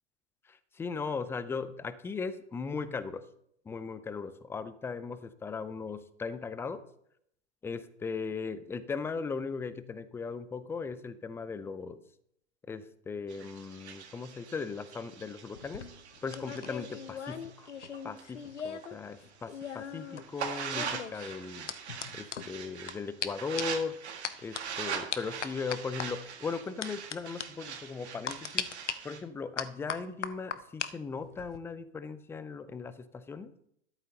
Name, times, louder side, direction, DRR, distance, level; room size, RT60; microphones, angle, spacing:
voice 1, 0.5-3.2 3.7-6.8 7.6-12.0 12.7-15.9 16.2-17.7 18.0-21.7 22.1-24.0 24.4-28.7 29.0-33.5, left 5 dB, 5° left, 14 dB, 0.5 m, -38 dB
sound 1, 13.3-18.9 19.3-29.2, right 7 dB, 70° right, 1.9 m, -42 dB
sound 2, 15.5-19.0 19.2-22.9 23.2-23.3 23.6-23.8 24.2-24.6 25.1-26.1 26.8-27.2 27.4-27.5 28.3-28.9 29.6-30.9 31.2-31.6, left 7 dB, 80° left, 0.9 m, -38 dB
13.0 x 11.0 x 2.9 m, 0.72 s
figure-of-eight pair, 100°, 35 cm